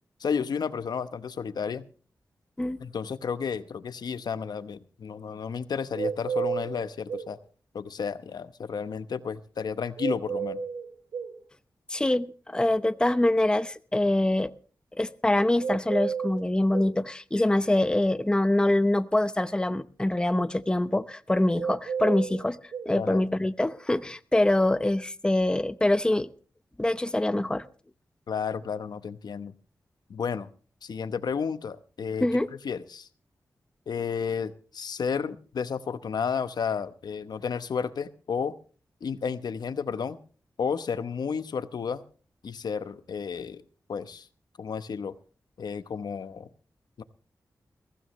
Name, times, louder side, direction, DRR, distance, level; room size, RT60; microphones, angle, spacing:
voice 1, 0.2-1.8 2.8-7.4 7.7-10.6 22.9-23.2 28.3-29.5 30.1-30.5 30.8-32.3 32.6-33.1 33.9-38.5 39.0-40.2 40.6-42.0 42.4-43.6 43.9-44.3 44.6-45.1 45.6-46.5 47.0-47.1, left 6 dB, 80° left, 13 dB, 0.9 m, -32 dB
sound 1, 5.9-7.3 10.0-11.4 15.6-17.0 21.5-22.9, right 6 dB, 75° right, 1.7 m, -32 dB
voice 2, 11.9-14.5 15.0-22.6 22.9-26.3 26.8-27.6 32.2-32.5, left 1 dB, 10° left, 13 dB, 0.8 m, -24 dB
22.0 x 16.0 x 3.1 m, 0.39 s
wide cardioid pair, 100°, 7 cm